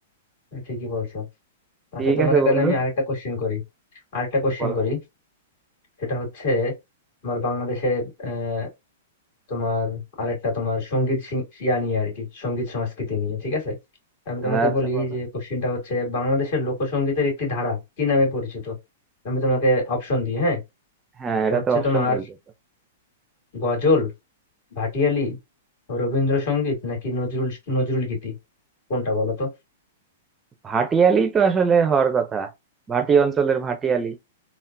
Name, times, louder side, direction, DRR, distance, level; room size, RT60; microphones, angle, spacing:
voice 1, 0.5-1.2 1.9-3.6 4.1-5.0 6.0-6.7 7.2-8.7 9.5-13.7 14.3-18.8 19.2-20.6 21.5-22.2 23.5-24.1 24.8-25.4 25.9-28.3 28.9-29.5, left 2 dB, 55° left, 2.1 m, -24 dB
voice 2, 2.0-2.8 4.6-4.8 14.4-15.1 21.2-22.2 30.6-32.5 32.9-34.2, right 6 dB, 20° right, 0.4 m, -21 dB
3.6 x 2.0 x 2.5 m
hypercardioid pair, 125°, 0 cm